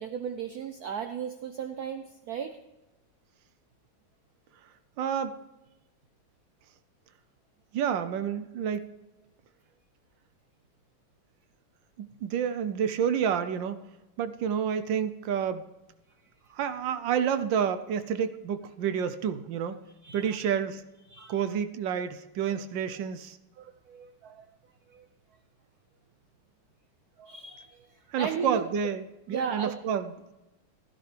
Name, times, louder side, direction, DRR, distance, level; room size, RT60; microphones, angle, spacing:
voice 1, 0.0-2.6 20.0-20.5 21.1-21.4 22.5-22.6 22.9-23.0 23.6-24.5 24.9-25.1 27.2-28.7 29.3-29.7, right 7 dB, 90° right, 8 dB, 0.8 m, -36 dB
voice 2, 5.0-5.4 7.7-8.9 12.0-13.8 14.2-15.6 16.5-19.8 20.1-20.8 21.3-23.4 28.1-30.3, right 8 dB, 70° right, 10 dB, 1.2 m, -29 dB
16.0 x 11.0 x 3.3 m, 1.0 s
omnidirectional pair, 2.4 m